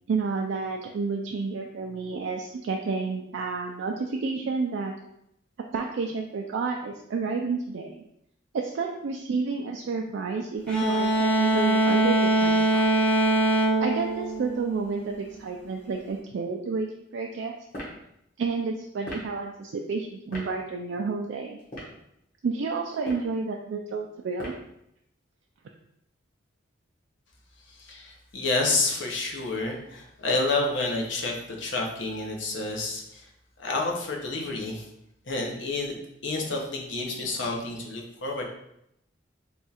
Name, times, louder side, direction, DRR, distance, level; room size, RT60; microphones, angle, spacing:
voice 1, 0.1-4.9 5.7-8.0 8.5-12.9 13.8-17.5 18.4-21.6 22.4-24.6, right 4 dB, 65° right, 1 dB, 0.3 m, -30 dB
sound 1, 10.7-15.1, right 2 dB, 5° left, 0.6 m, -23 dB
sound 2, 17.7-18.0 19.0-19.3 20.3-20.5 21.6-22.0 22.9-23.3 24.4-24.7, equal, 45° left, 1.2 m, -38 dB
voice 2, 27.7-33.3 33.6-34.9 35.3-36.0 36.2-38.4, left 3 dB, 65° left, 0 dB, 0.8 m, -29 dB
3.5 x 2.4 x 4.2 m, 0.78 s
head